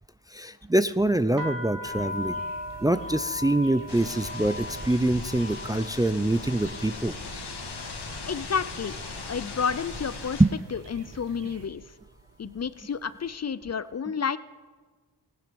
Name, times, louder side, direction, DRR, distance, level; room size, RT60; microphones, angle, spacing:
voice 1, 0.3-2.4 2.8-7.1 10.4-10.5, right 1 dB, 10° right, 13 dB, 0.5 m, -24 dB
sound 1, 1.4-9.2 9.5-10.2 10.8-11.1 11.4-12.8, left 2 dB, 50° right, 1.4 m, -39 dB
sound 2, 1.8-11.7, right 4 dB, 85° right, 1.8 m, -47 dB
sound 3, 3.9-10.5, left 4 dB, 65° left, 1.9 m, -39 dB
voice 2, 8.2-9.0 9.3-10.4 10.7-11.8 12.4-14.4, left 6 dB, 40° left, 16 dB, 0.6 m, -30 dB
16.5 x 11.5 x 5.2 m, 1.5 s
cardioid pair, 40°, 42 cm